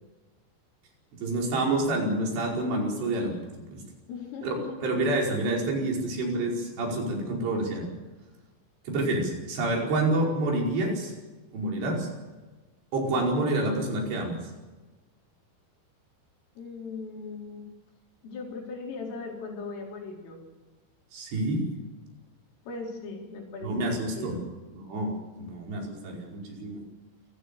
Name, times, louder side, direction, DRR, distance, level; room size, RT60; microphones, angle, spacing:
voice 1, 1.2-3.4 3.7-3.8 4.4-4.5 4.8-7.9 8.9-11.1 11.5-12.1 12.9-14.4 21.1-21.6 23.6-24.4 24.7-26.8, right 2 dB, 60° right, -1 dB, 7.1 m, -28 dB
voice 2, 4.1-5.0 16.6-17.7 18.2-20.4 22.7-24.4, left 4 dB, 85° left, 0 dB, 7.0 m, -39 dB
28.5 x 17.0 x 6.9 m, 1.2 s
omnidirectional pair, 5.6 m